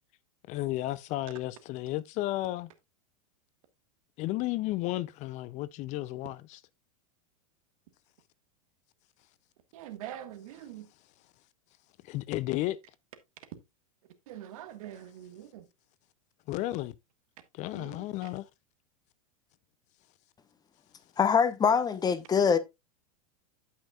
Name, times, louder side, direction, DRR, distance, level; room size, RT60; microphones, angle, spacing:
voice 1, 0.5-2.7 4.2-6.6 12.0-12.8 16.5-16.9 17.5-18.5, left 16 dB, 40° left, 0.5 m, -33 dB
voice 2, 9.7-10.9 14.3-15.6 17.7-18.0, right 11 dB, 65° right, 1.6 m, -43 dB
voice 3, 21.2-22.6, left 6 dB, 20° left, 0.9 m, -24 dB
14.5 x 5.7 x 2.4 m
hypercardioid pair, 110°, 19 cm